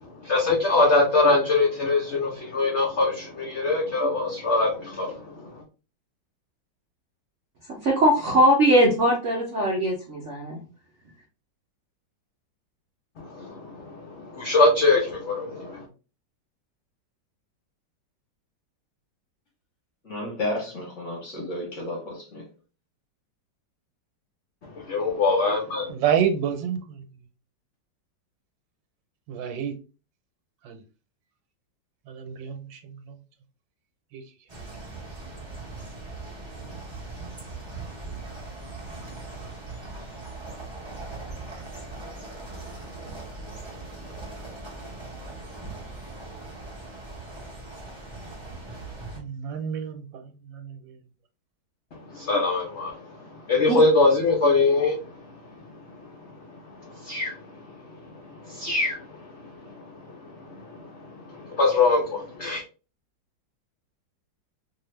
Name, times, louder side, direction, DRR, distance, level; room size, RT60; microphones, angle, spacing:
voice 1, 0.0-5.6 13.2-15.8 24.6-25.9 51.9-62.6, left 3 dB, 80° left, 0.6 m, -24 dB
voice 2, 7.8-10.6, equal, 65° right, 0.7 m, -20 dB
voice 3, 20.0-22.4, left 1 dB, 55° left, 0.9 m, -32 dB
voice 4, 25.9-27.0 29.3-29.7 30.6-30.8 32.1-33.2 34.1-34.2 49.1-50.9, right 8 dB, 85° right, 1.4 m, -29 dB
sound 1, 34.5-49.2, right 3 dB, 30° right, 0.5 m, -39 dB
2.7 x 2.4 x 3.0 m
omnidirectional pair, 2.0 m